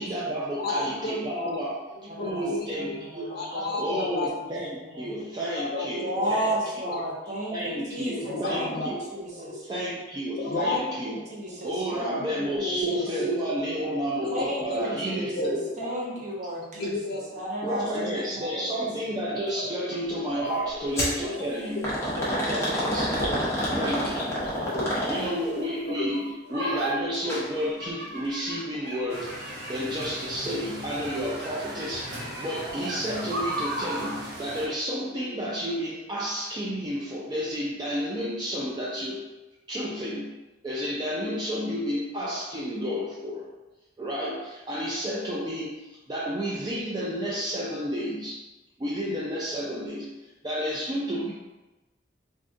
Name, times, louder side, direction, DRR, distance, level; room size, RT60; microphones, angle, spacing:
voice 1, 0.0-1.8 2.2-6.5 6.8-6.9 7.5-9.0 9.6-11.2 11.6-15.7 17.6-21.9 22.4-23.1 23.8-24.4 25.1-26.2 26.5-39.2 39.7-40.3 40.6-43.5 44.0-48.4 48.8-50.1 50.4-51.3, equal, 20° right, -5 dB, 0.3 m, -31 dB
voice 2, 0.6-1.7 2.1-3.0 3.3-4.3 5.5-5.9 6.2-6.3 6.9-7.0 8.2-9.4 10.4-10.8 12.5-13.3 13.7-13.9 14.2-15.9 16.7-17.4 17.9-18.5 20.4-21.1 21.4-21.5 21.7-22.4 24.4-25.0 25.3-26.2 26.5-26.9 27.2-27.3, left 2 dB, 55° left, -1 dB, 0.5 m, -33 dB
voice 3, 2.1-3.7 4.9-5.2 6.0-9.7 10.6-13.0 14.3-16.9 17.3-18.9, right 1 dB, 40° right, -5 dB, 0.8 m, -34 dB
sound 1, 21.0-21.2 21.8-25.5 27.1-27.4 27.8-27.9 28.7-28.8, equal, 15° left, 0.7 m, -28 dB
sound 2, 26.5-26.9 27.6-30.4 31.0-34.2, right 1 dB, 80° right, 1.3 m, -35 dB
sound 3, 29.1-34.7, equal, 65° right, 1.1 m, -40 dB
3.6 x 2.5 x 2.5 m, 1.1 s
head